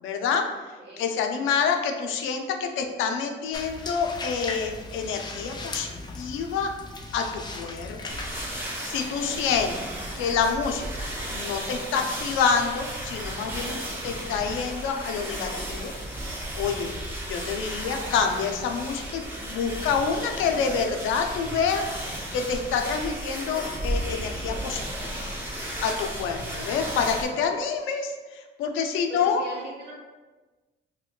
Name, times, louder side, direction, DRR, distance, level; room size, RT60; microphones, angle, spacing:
voice 1, 0.0-0.5 1.0-6.7 7.1-8.2 8.6-9.7 10.1-15.9 16.5-16.9 17.2-25.3 25.8-29.4, left 6 dB, 85° left, 4 dB, 0.4 m, -27 dB
voice 2, 0.8-1.1 25.7-26.3 29.1-29.9, right 2 dB, 55° right, -4 dB, 1.3 m, -41 dB
sound 1, 3.5-8.6, left 2 dB, 20° left, 0.4 m, -38 dB
sound 2, 8.1-27.3, right 1 dB, 10° right, 0.7 m, -34 dB
4.4 x 2.2 x 2.2 m, 1.3 s
cardioid pair, 90°, 20 cm